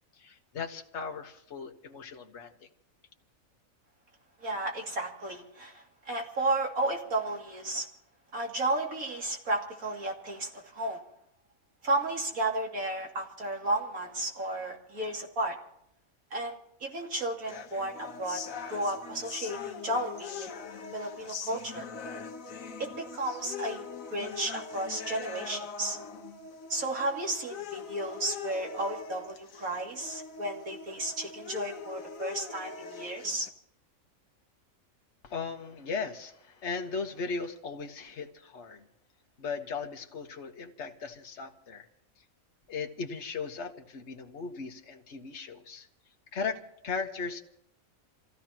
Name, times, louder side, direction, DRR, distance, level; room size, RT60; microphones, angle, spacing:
voice 1, 0.1-2.7 35.2-38.9 39.4-41.9 42.2-42.3 42.7-45.9 46.3-47.4, left 5 dB, 55° left, 3 dB, 1.5 m, -37 dB
voice 2, 4.4-7.9 8.3-11.0 11.8-15.6 16.3-18.4 18.7-20.5 20.9-21.9 22.8-26.0 26.7-33.5, right 2 dB, 80° right, 0 dB, 3.1 m, -33 dB
sound 1, 17.5-33.5, left 6 dB, 70° left, 1.4 m, -42 dB
28.0 x 16.0 x 3.0 m, 0.72 s
omnidirectional pair, 1.5 m